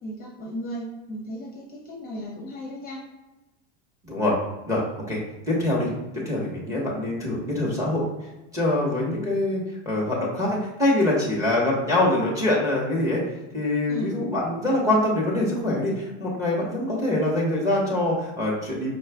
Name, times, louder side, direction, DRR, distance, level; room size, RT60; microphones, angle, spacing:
voice 1, 0.0-3.0 13.9-14.2, equal, 25° left, -2 dB, 0.7 m, -35 dB
voice 2, 4.0-4.3 4.7-4.8 5.1-5.2 5.5-8.1 8.5-13.2 13.5-18.9, left 1 dB, 10° right, -4 dB, 0.9 m, -24 dB
5.0 x 2.3 x 3.4 m, 1.0 s
supercardioid pair, 145°, 37 cm